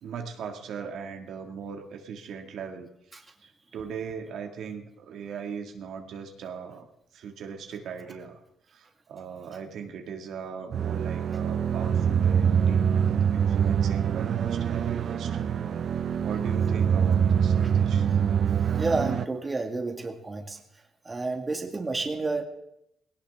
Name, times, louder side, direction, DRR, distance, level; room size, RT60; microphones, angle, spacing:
voice 1, 0.0-2.9 3.4-6.9 7.1-8.4 8.7-12.9 13.3-15.5 16.2-18.1, right 6 dB, 75° right, 3 dB, 2.1 m, -39 dB
sound 1, 10.7-19.2, right 8 dB, 60° right, 0.6 m, -24 dB
voice 2, 18.8-20.6 21.1-22.4, right 3 dB, 25° right, 4 dB, 1.9 m, -30 dB
19.0 x 17.5 x 3.6 m, 0.79 s
cardioid pair, 90°, 0 cm